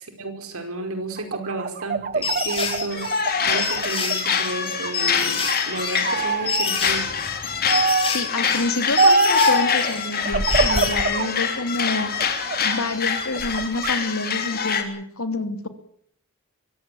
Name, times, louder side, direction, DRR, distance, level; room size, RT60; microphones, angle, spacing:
voice 1, 0.0-7.1, right 2 dB, 70° right, 7 dB, 5.0 m, -32 dB
sound 1, 1.2-4.4 4.8-5.6 6.0-6.7 7.7-8.2 9.0-9.5 10.3-11.3 11.8-12.8 13.2-13.9, right 4 dB, 40° right, 1.1 m, -24 dB
sound 2, 2.2-10.9, left 5 dB, 25° left, 5.5 m, -28 dB
sound 3, 2.9-14.8, left 6 dB, 45° left, 3.7 m, -25 dB
voice 2, 8.1-12.4 12.6-15.7, left 2 dB, 70° left, 8 dB, 2.9 m, -28 dB
23.5 x 16.5 x 9.4 m, 0.65 s
head